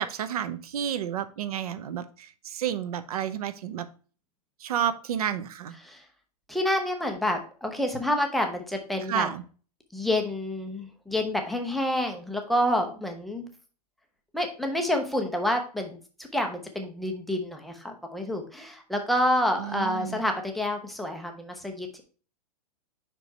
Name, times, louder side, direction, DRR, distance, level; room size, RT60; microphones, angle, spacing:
voice 1, 0.0-3.9 4.6-5.7 9.1-9.4 19.6-20.2, right 9 dB, 65° right, 12 dB, 0.7 m, -31 dB
voice 2, 6.5-9.3 9.9-13.5 14.3-16.0 16.3-22.0, left 1 dB, ahead, 3 dB, 0.4 m, -28 dB
5.3 x 4.6 x 4.4 m, 0.38 s
supercardioid pair, 170°, 20 cm